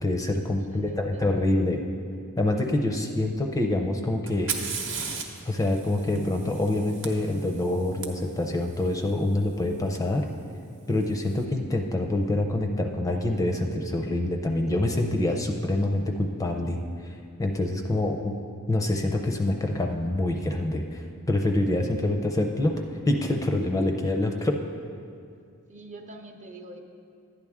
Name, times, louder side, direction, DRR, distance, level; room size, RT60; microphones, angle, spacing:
voice 1, 0.0-1.8 2.4-4.5 5.5-10.3 10.9-18.3 18.7-21.0 21.3-24.5, left 1 dB, 15° left, 3 dB, 0.5 m, -26 dB
voice 2, 0.6-1.6 24.2-24.6 25.7-26.8, right 1 dB, 35° right, 4 dB, 0.7 m, -46 dB
Fire, 4.3-8.1 10.0-10.1 10.9-11.3, right 5 dB, 60° right, 1.0 m, -36 dB
11.5 x 9.4 x 3.6 m, 2.4 s
head